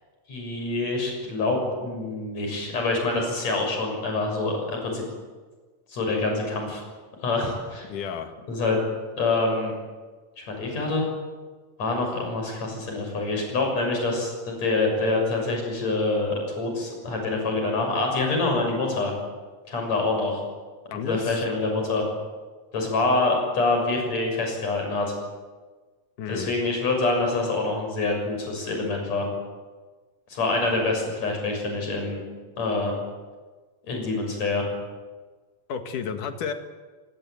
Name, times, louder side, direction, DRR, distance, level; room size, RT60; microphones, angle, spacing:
voice 1, 0.3-5.1 5.9-6.8 7.2-7.9 8.5-8.8 9.2-9.7 10.4-11.0 11.8-19.1 19.7-20.4 20.9-22.0 22.7-25.1 26.3-29.3 30.3-32.2 32.6-32.9 33.9-34.7, left 3 dB, 55° left, 2 dB, 7.9 m, -26 dB
voice 2, 7.8-8.3 20.9-21.4 26.2-26.5 35.7-36.5, left 6 dB, 70° left, 7 dB, 3.3 m, -32 dB
25.5 x 19.5 x 9.1 m, 1.4 s
omnidirectional pair, 3.8 m